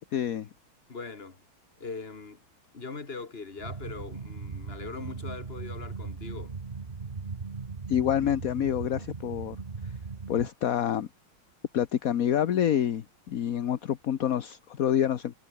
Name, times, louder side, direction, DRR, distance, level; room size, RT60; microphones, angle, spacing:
voice 1, 0.1-0.5 7.9-9.6 10.3-11.1 11.7-15.3, left 10 dB, 55° left, 1.2 m, -27 dB
voice 2, 0.9-1.4 1.8-2.4 2.7-6.6, left 4 dB, 30° left, 2.3 m, -41 dB
sound 1, 3.6-10.5, right 4 dB, 30° right, 1.2 m, -38 dB
omnidirectional pair, 2.3 m